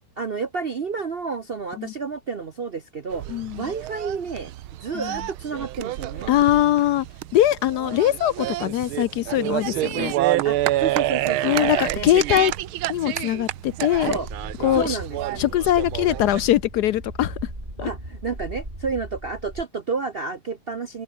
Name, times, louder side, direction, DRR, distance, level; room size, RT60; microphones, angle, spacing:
voice 1, 0.2-4.5 4.8-6.4 10.4-12.1 14.0-14.3 14.7-15.4 17.8-21.0, right 5 dB, 60° right, 0.6 m, -30 dB
sound 1, 3.1-16.5, right 15 dB, 90° right, 1.6 m, -28 dB
voice 2, 3.3-3.6 4.9-5.2 6.3-7.0 7.3-10.1 11.4-12.5 12.9-14.2 14.6-15.0 15.4-17.3 17.8-17.9, left 13 dB, 75° left, 0.9 m, -21 dB
sound 2, 13.9-19.6, right 1 dB, 20° right, 7.9 m, -38 dB
open air
omnidirectional pair, 2.2 m